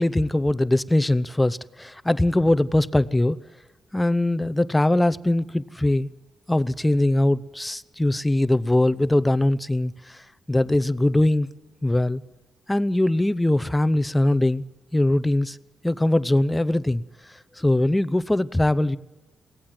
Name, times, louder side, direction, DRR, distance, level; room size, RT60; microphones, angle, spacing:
voice 1, 0.0-3.4 3.9-6.1 6.5-11.5 11.8-12.2 12.7-14.6 14.9-15.6 15.8-17.0 17.3-19.0, left 1 dB, 10° left, 15 dB, 0.8 m, -21 dB
23.0 x 17.0 x 7.7 m, 1.1 s
cardioid pair, 65°, 0 cm